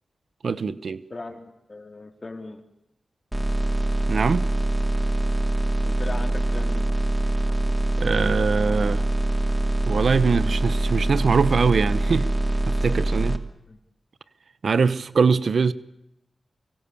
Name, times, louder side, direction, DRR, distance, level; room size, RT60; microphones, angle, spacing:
voice 1, 0.4-1.0 4.1-4.5 8.0-9.0 9.9-12.3 12.7-13.5 14.6-15.7, right 5 dB, 70° right, 1.0 m, -22 dB
voice 2, 1.1-2.6 5.8-6.8 13.7-13.8, left 2 dB, 40° left, 4.0 m, -38 dB
sound 1, 3.3-13.4, right 2 dB, 15° right, 2.5 m, -24 dB
25.0 x 24.0 x 7.2 m
cardioid pair, 45°, 0 cm